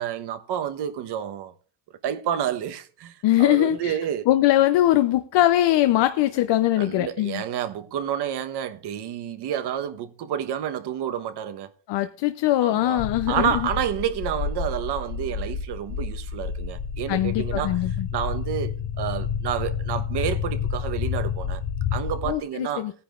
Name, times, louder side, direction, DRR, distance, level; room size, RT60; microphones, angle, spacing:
voice 1, 0.0-1.5 2.0-4.2 6.8-11.7 12.6-13.0 13.3-17.8 18.1-21.6 21.9-22.9, right 9 dB, 70° right, 1.1 m, -29 dB
voice 2, 3.2-4.0 4.3-7.4 11.9-13.7 17.1-18.1 22.3-22.9, left 14 dB, 80° left, 0.8 m, -21 dB
sound 1, 13.0-22.3, left 7 dB, 45° left, 0.6 m, -29 dB
18.5 x 9.9 x 2.5 m
cardioid pair, 130°, 42 cm